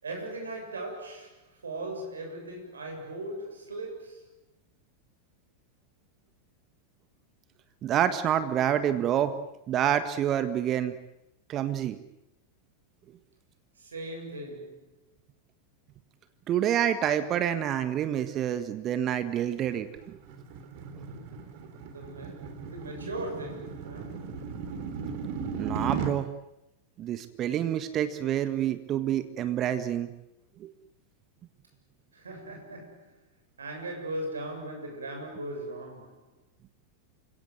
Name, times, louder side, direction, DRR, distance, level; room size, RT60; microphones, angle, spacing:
voice 1, 0.0-4.3 13.8-15.0 21.9-24.4 32.1-33.2 33.6-36.3, right 1 dB, 70° right, 7.2 m, -39 dB
voice 2, 7.8-9.4 9.7-11.0 11.5-12.0 16.5-20.2 25.6-26.3 27.0-30.1 30.6-30.7, right 10 dB, 30° right, 1.6 m, -27 dB
sound 1, 19.7-26.1, right 6 dB, 45° right, 3.6 m, -37 dB
29.0 x 17.5 x 9.5 m
figure-of-eight pair, 90°, 0 cm